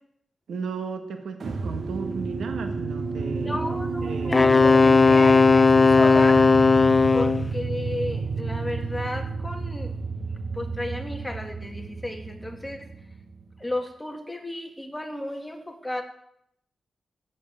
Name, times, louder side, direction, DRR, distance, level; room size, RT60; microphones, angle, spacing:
voice 1, 0.5-3.6 4.0-4.4, right 5 dB, 75° right, 5 dB, 1.6 m, -34 dB
sound 1, 1.4-13.6, right 4 dB, 50° right, 1.1 m, -31 dB
voice 2, 3.4-6.5 7.1-10.3 10.5-12.9 13.6-16.0, left 1 dB, 10° left, 4 dB, 1.8 m, -33 dB
Wind instrument woodwind instrument, 4.3-7.5, left 4 dB, 25° left, 0.6 m, -16 dB
14.5 x 8.5 x 8.8 m, 0.76 s
wide cardioid pair, 125°, 0 cm